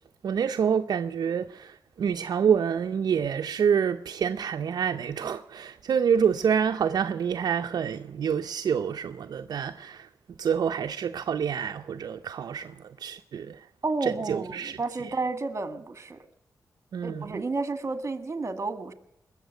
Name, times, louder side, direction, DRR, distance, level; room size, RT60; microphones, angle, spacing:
voice 1, 0.2-10.1 10.4-13.6 14.0-14.8 16.9-17.1, right 7 dB, 70° right, 0.6 m, -27 dB
voice 2, 13.8-16.2 17.0-18.9, right 3 dB, 40° right, 1.8 m, -31 dB
21.0 x 7.2 x 9.1 m
cardioid pair, 70°, 7 cm